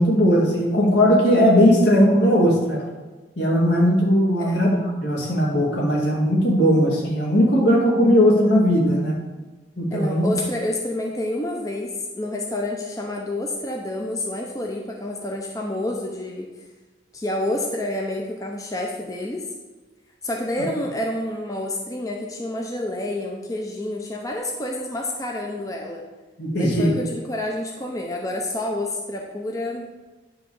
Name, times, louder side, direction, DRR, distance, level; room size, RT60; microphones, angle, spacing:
voice 1, 0.0-2.8 3.4-9.2 9.8-10.3 26.4-26.9, equal, 75° left, -3 dB, 2.5 m, -18 dB
voice 2, 9.9-16.5 17.1-19.5 20.2-26.0 26.6-29.9, left 1 dB, 20° left, 1 dB, 0.7 m, -28 dB
10.0 x 3.7 x 7.0 m, 1.2 s
head